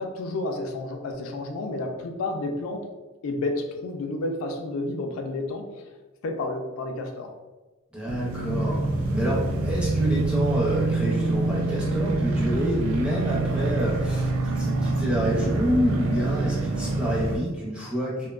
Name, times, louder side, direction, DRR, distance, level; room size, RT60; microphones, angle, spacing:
voice 1, 0.0-2.9 3.2-5.7 6.2-7.3, left 2 dB, 75° left, 4 dB, 0.3 m, -30 dB
voice 2, 7.9-18.3, right 1 dB, 5° right, -5 dB, 0.4 m, -28 dB
sound 1, 8.1-17.4, right 2 dB, 75° right, 0.4 m, -26 dB
2.5 x 2.1 x 2.3 m, 1.2 s
head